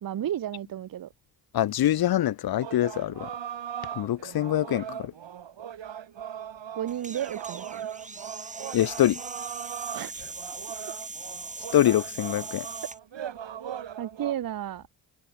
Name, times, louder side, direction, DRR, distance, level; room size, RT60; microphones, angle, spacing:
voice 1, 0.0-1.1 6.7-7.9 9.9-10.2 14.0-14.9, right 11 dB, 45° right, 0.8 m, -33 dB
voice 2, 1.5-3.3 4.0-5.1 8.7-9.2 11.7-12.7, left 12 dB, 50° left, 0.7 m, -24 dB
sound 1, 2.6-14.3, right 9 dB, 65° right, 3.1 m, -39 dB
sound 2, 6.9-13.0, right 3 dB, 15° right, 1.2 m, -40 dB
supercardioid pair, 55°, 49 cm